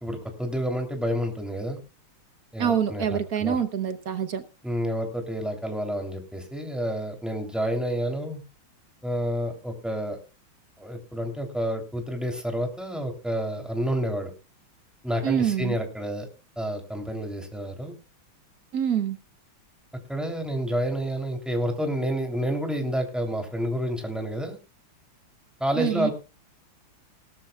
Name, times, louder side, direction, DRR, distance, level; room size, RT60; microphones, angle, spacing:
voice 1, 0.0-1.8 2.5-3.6 4.6-8.4 9.0-10.2 10.8-14.3 15.0-16.3 16.6-18.0 20.1-24.6 25.6-26.1, equal, ahead, 3 dB, 2.9 m, -29 dB
voice 2, 2.6-4.4 15.2-15.8 18.7-19.2 25.8-26.1, right 8 dB, 55° right, 10 dB, 1.3 m, -26 dB
18.5 x 13.0 x 2.3 m, 0.29 s
omnidirectional pair, 2.3 m